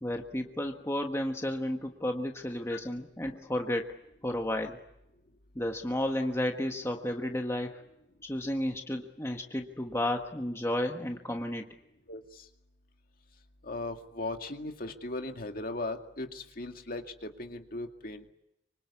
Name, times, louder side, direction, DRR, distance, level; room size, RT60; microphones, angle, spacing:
voice 1, 0.0-3.9 4.2-4.8 5.5-7.8 8.2-11.6, left 1 dB, 15° left, 3 dB, 1.4 m, -32 dB
voice 2, 12.1-12.5 13.6-18.3, left 2 dB, 50° left, 5 dB, 2.2 m, -38 dB
25.5 x 25.0 x 8.4 m, 0.85 s
head